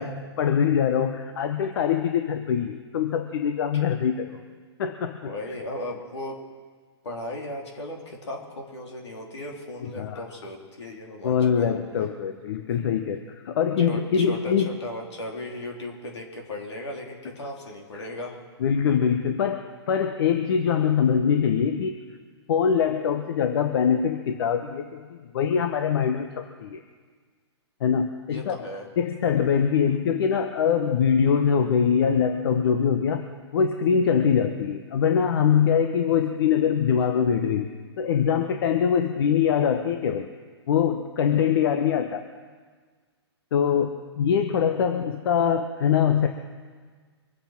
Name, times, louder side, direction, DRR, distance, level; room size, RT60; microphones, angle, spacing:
voice 1, 0.0-4.4 4.8-5.3 10.0-10.2 11.2-14.7 17.9-18.1 18.6-22.0 22.5-26.8 27.8-28.6 29.0-40.3 40.7-42.2 43.5-46.3, left 7 dB, 55° left, 6 dB, 1.0 m, -23 dB
voice 2, 5.2-6.4 7.0-11.8 13.8-18.4 28.3-28.9 29.9-30.0 44.3-44.4, left 1 dB, 75° left, 0 dB, 3.7 m, -36 dB
24.5 x 8.1 x 5.9 m, 1.5 s
hypercardioid pair, 135°, 14 cm